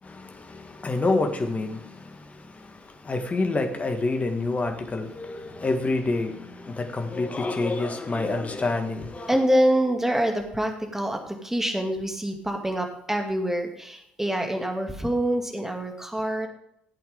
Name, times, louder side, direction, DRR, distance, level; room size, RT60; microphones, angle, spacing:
voice 1, 0.0-9.4, left 2 dB, 25° left, 1.9 m, -28 dB
voice 2, 9.3-16.5, right 1 dB, 5° right, 2.4 m, -26 dB
15.0 x 8.5 x 3.6 m
figure-of-eight pair, 50°, 5 cm